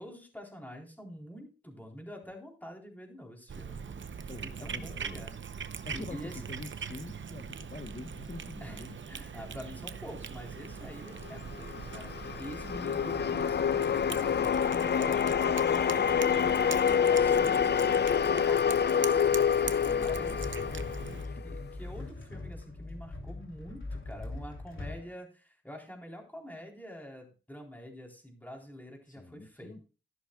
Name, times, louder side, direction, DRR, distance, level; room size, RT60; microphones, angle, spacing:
voice 1, 0.0-3.8 4.1-5.3 5.6-6.4 8.6-19.5 19.9-21.1 21.4-29.8, equal, 10° left, 1 dB, 3.8 m, -46 dB
Cat, 3.5-21.3, right 6 dB, 75° right, 0.7 m, -42 dB
voice 2, 4.3-5.2 5.8-9.0 19.8-20.4 20.9-21.4 24.8-25.1 29.1-29.8, left 3 dB, 40° left, 5 dB, 1.1 m, -46 dB
sound 1, 11.2-21.6, left 7 dB, 60° left, 0.4 m, -27 dB
sound 2, 19.2-25.0, left 2 dB, 80° left, 3.0 m, -41 dB
13.5 x 11.0 x 2.3 m, 0.34 s
wide cardioid pair, 110°, 20 cm